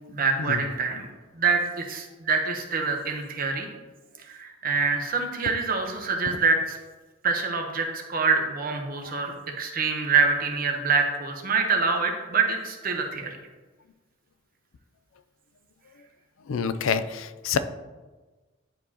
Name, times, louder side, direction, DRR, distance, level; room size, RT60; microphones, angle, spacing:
voice 1, 0.1-1.1 1.3-3.7 4.2-6.8 7.2-13.4, right 4 dB, 45° right, 3 dB, 0.9 m, -25 dB
voice 2, 16.5-17.6, left 6 dB, 90° left, 11 dB, 0.4 m, -26 dB
10.5 x 4.7 x 2.8 m, 1.3 s
head